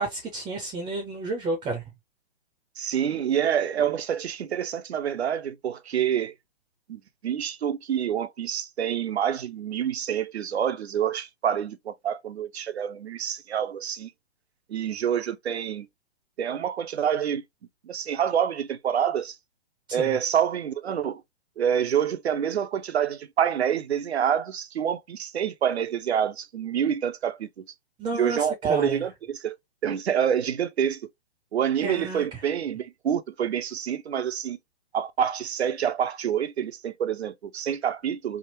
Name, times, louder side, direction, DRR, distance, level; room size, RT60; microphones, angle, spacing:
voice 1, 0.0-1.8 20.0-20.1 28.0-29.0 31.8-32.3, right 2 dB, 15° right, 0.6 m, -31 dB
voice 2, 2.8-6.3 6.9-14.1 14.7-15.9 16.4-17.4 17.8-19.4 19.9-21.2 21.6-27.6 28.1-29.6 29.8-31.0 31.5-34.6 34.9-38.4, right 9 dB, 80° right, 0.6 m, -27 dB
3.5 x 2.1 x 3.0 m
hypercardioid pair, 125°, 32 cm